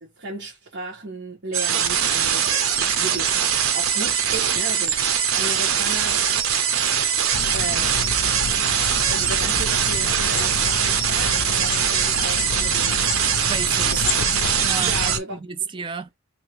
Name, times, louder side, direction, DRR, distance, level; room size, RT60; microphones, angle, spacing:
voice 1, 0.0-3.5 3.7-6.2 6.9-7.0 7.5-8.0 9.1-13.1 13.9-14.1 14.8-15.4, right 2 dB, 55° right, 1.2 m, -35 dB
sound 1, 1.5-15.2, right 8 dB, 85° right, 0.7 m, -22 dB
sound 2, 7.3-15.2, left 6 dB, 50° left, 0.3 m, -31 dB
voice 2, 13.5-14.0 14.6-16.1, right 5 dB, 25° right, 0.5 m, -31 dB
2.9 x 2.9 x 3.0 m
head